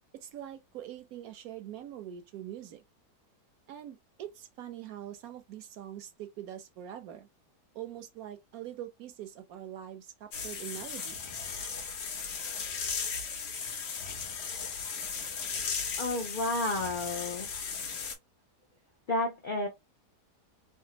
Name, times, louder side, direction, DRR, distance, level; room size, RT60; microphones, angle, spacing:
voice 1, 0.1-2.8 3.7-7.3 7.7-11.2, right 11 dB, 70° right, 0.9 m, -43 dB
sound 1, 10.3-18.2, left 5 dB, 80° left, 1.4 m, -36 dB
voice 2, 16.0-17.5 19.1-19.7, left 2 dB, 65° left, 0.5 m, -31 dB
3.5 x 2.1 x 2.8 m
omnidirectional pair, 1.8 m